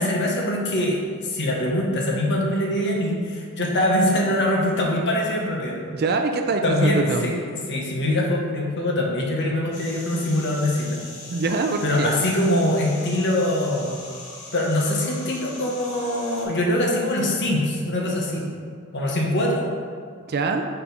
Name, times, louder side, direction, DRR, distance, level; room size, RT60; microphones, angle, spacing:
voice 1, 0.0-5.8 6.6-7.3 7.7-11.0 11.8-14.0 14.5-18.4 18.9-19.6, left 1 dB, 50° left, -1 dB, 1.0 m, -23 dB
voice 2, 5.9-7.2 11.3-12.2 20.3-20.7, right 3 dB, 45° right, 5 dB, 0.4 m, -24 dB
sound 1, 9.7-16.4, left 2 dB, 85° left, 1.5 m, -40 dB
4.4 x 4.2 x 5.3 m, 2.1 s
head